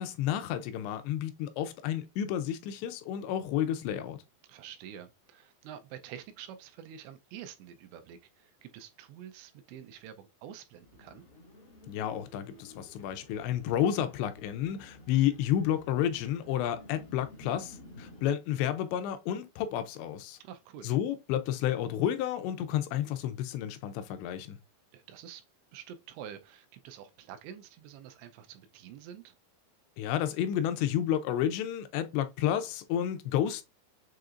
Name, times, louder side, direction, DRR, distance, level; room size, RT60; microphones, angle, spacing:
voice 1, 0.0-4.2 11.9-20.4 20.8-24.6 30.0-33.6, left 10 dB, 85° left, 2.8 m, -31 dB
voice 2, 4.5-11.2 20.4-20.9 24.9-25.4 25.7-29.4, right 9 dB, 85° right, 2.8 m, -47 dB
sound 1, 10.8-18.3, left 2 dB, 60° left, 1.0 m, -53 dB
7.5 x 2.8 x 2.4 m
omnidirectional pair, 4.9 m